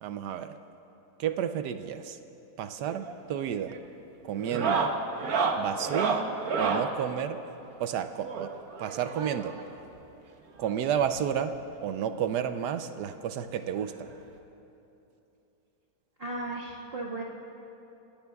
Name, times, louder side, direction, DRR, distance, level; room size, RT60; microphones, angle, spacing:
voice 1, 0.0-0.6 1.2-2.2 2.6-3.8 4.2-4.9 5.6-7.4 7.8-8.5 8.8-9.5 10.6-11.5 11.8-14.1, right 9 dB, 80° right, 9 dB, 1.2 m, -31 dB
sound 1, 2.9-3.2 3.5-3.8 4.4-6.9 8.2-9.6 10.7-10.8 11.0-11.1 11.5-11.6 12.9-13.0 14.4-14.5, right 5 dB, 60° right, 1.4 m, -30 dB
voice 2, 16.2-17.2, right 2 dB, 35° right, -6 dB, 1.8 m, -35 dB
28.5 x 17.0 x 2.3 m, 2.9 s
omnidirectional pair, 1.8 m